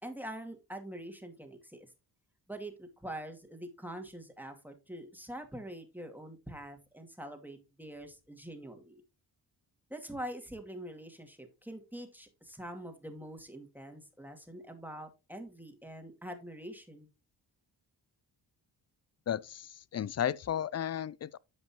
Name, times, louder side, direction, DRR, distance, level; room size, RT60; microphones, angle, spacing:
voice 1, 0.0-1.9 2.5-9.0 9.9-17.1, right 1 dB, 5° right, 2.2 m, -44 dB
voice 2, 19.3-21.4, left 9 dB, 35° left, 0.4 m, -34 dB
12.5 x 5.2 x 2.9 m
supercardioid pair, 45°, 47 cm